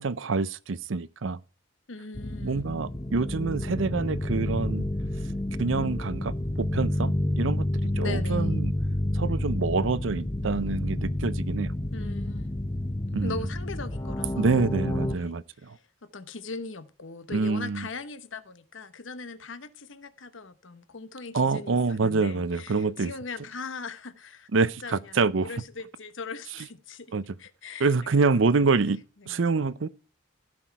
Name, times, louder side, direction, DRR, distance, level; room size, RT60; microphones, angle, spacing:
voice 1, 0.0-1.4 2.4-4.8 5.6-7.7 8.0-8.7 9.1-11.7 13.1-13.3 14.4-15.8 17.3-17.9 21.3-23.1 24.5-25.5 27.1-27.2 27.8-29.0 29.3-29.9, right 4 dB, 75° right, 0.6 m, -26 dB
voice 2, 1.9-2.6 8.0-8.5 11.9-12.5 13.2-14.7 15.1-15.8 16.1-27.1 27.4-27.9 29.2-29.4, left 4 dB, 70° left, 1.1 m, -40 dB
sound 1, 2.1-15.2, left 1 dB, 20° left, 0.8 m, -29 dB
15.5 x 6.0 x 4.6 m
head